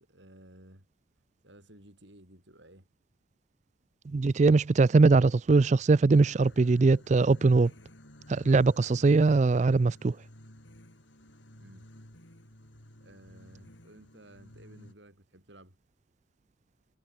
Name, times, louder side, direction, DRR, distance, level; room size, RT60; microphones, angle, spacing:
voice 1, 0.1-0.9 1.4-2.9 11.6-11.9 13.0-15.8, right 1 dB, 65° right, 7.6 m, -55 dB
voice 2, 4.1-7.7 8.3-10.2, right 3 dB, 35° right, 0.4 m, -21 dB
sound 1, 6.1-14.9, left 1 dB, 70° left, 6.0 m, -53 dB
head